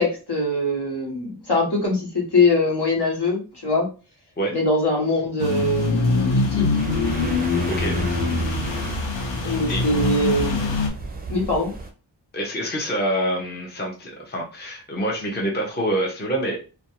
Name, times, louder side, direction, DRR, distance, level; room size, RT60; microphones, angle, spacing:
voice 1, 0.0-3.9 4.5-6.7 9.4-10.7 11.3-11.7, left 2 dB, 65° left, -2 dB, 1.2 m, -22 dB
sound 1, 5.4-10.9, left 4 dB, 85° left, 0.7 m, -23 dB
sound 2, 6.7-11.9, right 3 dB, 25° right, 0.5 m, -33 dB
voice 2, 12.3-16.6, right 1 dB, 25° left, 0 dB, 0.6 m, -26 dB
2.5 x 2.2 x 2.9 m, 0.33 s
wide cardioid pair, 80°, 43 cm